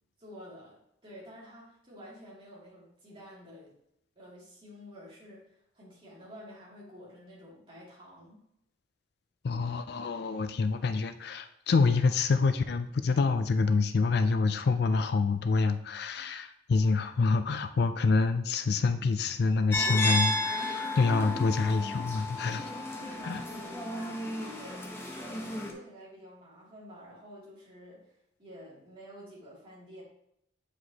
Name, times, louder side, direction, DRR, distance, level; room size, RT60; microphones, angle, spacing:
voice 1, 0.2-3.7 4.2-8.4 16.2-16.3 22.9-30.0, equal, 30° right, -6 dB, 2.5 m, -50 dB
voice 2, 9.4-22.7 23.2-23.4, left 4 dB, 60° left, 10 dB, 0.4 m, -27 dB
sound 1, 19.7-25.7, left 1 dB, 15° left, 0.8 m, -33 dB
7.9 x 4.8 x 2.8 m, 0.78 s
head